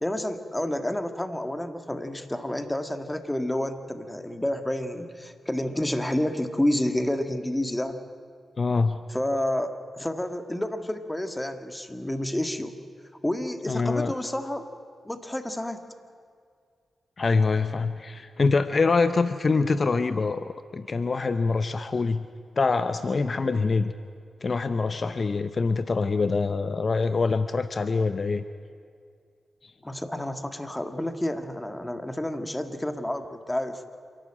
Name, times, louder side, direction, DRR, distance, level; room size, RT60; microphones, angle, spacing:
voice 1, 0.0-8.0 9.1-12.7 13.2-14.7 15.0-15.8 29.8-33.8, left 1 dB, 15° left, 8 dB, 1.8 m, -29 dB
voice 2, 8.6-9.0 13.7-14.1 17.2-22.3 22.6-23.9 24.4-28.4, left 4 dB, 50° left, 11 dB, 0.7 m, -25 dB
27.0 x 12.0 x 8.8 m, 2.2 s
cardioid pair, 50°, 0 cm